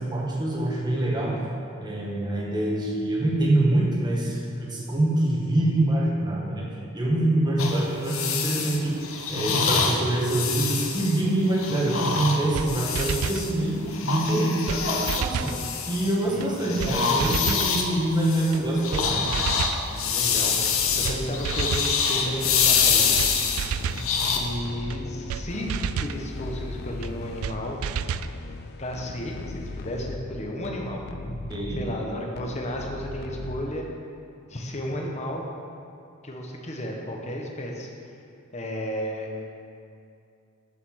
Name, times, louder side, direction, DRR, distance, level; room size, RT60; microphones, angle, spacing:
voice 1, 0.0-1.4 1.8-6.7 6.9-9.0 9.3-15.6 15.9-19.4 31.2-31.8, right 1 dB, 20° right, -4 dB, 1.4 m, -25 dB
sound 1, 7.6-13.5 13.9-16.3 16.6-24.4, left 5 dB, 70° left, 0.9 m, -26 dB
sound 2, 12.2-12.3 12.5-12.7 13.0-13.4 14.3-14.4 14.7-14.8 15.1-15.6 16.4-16.5 16.8-16.9 17.2-17.7 18.5-18.6 18.9-19.1 19.3-19.8 20.7-20.8 21.0-21.2 21.4-21.9 22.8-22.9 23.2-23.3 23.6-24.1 24.9-25.0 25.3-25.4 25.7-26.2 27.0-27.1 27.4-27.6 27.8-28.3, right 7 dB, 85° right, 0.3 m, -30 dB
voice 2, 16.3-16.8 20.1-23.5 24.2-25.7 26.0-27.8 28.8-31.0 31.8-33.8 34.5-35.4 36.2-37.9 38.5-39.4, equal, 35° left, 0 dB, 1.1 m, -33 dB
sound 3, 18.6-34.1, left 3 dB, 50° left, 0.4 m, -39 dB
7.2 x 6.8 x 6.3 m, 2.5 s
head